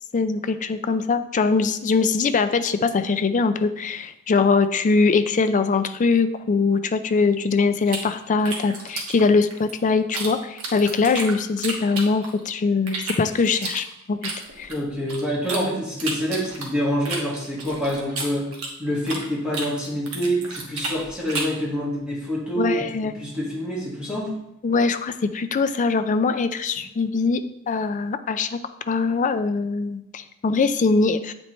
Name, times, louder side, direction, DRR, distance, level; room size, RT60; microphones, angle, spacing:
voice 1, 0.1-14.2 14.6-14.7 22.6-23.2 24.6-27.4 27.7-28.6 28.9-31.3, left 4 dB, 35° left, 10 dB, 0.4 m, -22 dB
sound 1, 7.9-10.3 10.6-12.5 12.9-15.6 16.0-19.3 19.5-21.6, right 3 dB, 75° right, 1.3 m, -32 dB
voice 2, 14.7-18.5 18.8-24.3, equal, 5° right, -6 dB, 1.6 m, -26 dB
8.5 x 4.3 x 3.1 m, 0.83 s
head